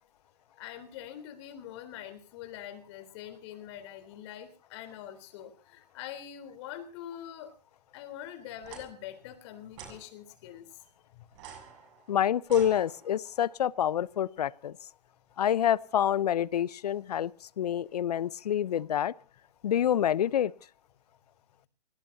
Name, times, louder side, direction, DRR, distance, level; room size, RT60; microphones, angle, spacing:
voice 1, 0.6-7.5 7.9-10.7 11.1-11.3, left 11 dB, 40° left, 8 dB, 3.8 m, -44 dB
sound 1, 8.6-8.8 9.7-10.0 11.3-13.3, right 7 dB, 45° right, 7.2 m, -48 dB
voice 2, 12.1-14.8 15.4-17.3 17.6-19.1 19.6-20.5, left 10 dB, 70° left, 20 dB, 0.8 m, -27 dB
28.0 x 18.5 x 2.8 m, 0.37 s
hypercardioid pair, 140°, 21 cm